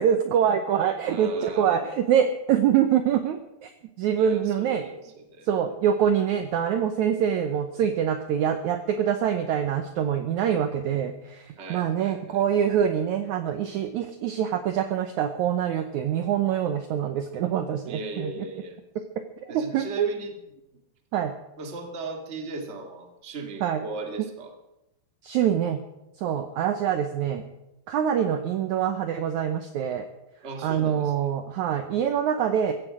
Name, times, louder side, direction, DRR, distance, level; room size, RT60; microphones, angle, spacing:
voice 1, 0.0-3.7 4.0-4.9 5.5-18.3 19.5-20.1 21.1-21.3 23.6-23.8 25.2-25.8 26.2-27.4 27.9-30.1 30.6-32.7, right 9 dB, 75° right, 8 dB, 1.8 m, -25 dB
voice 2, 1.1-1.8 4.2-5.5 11.6-12.4 17.9-18.8 19.5-20.3 21.6-24.5 30.4-31.1, right 3 dB, 25° right, 3 dB, 1.5 m, -37 dB
15.5 x 15.5 x 4.9 m, 0.90 s
omnidirectional pair, 4.1 m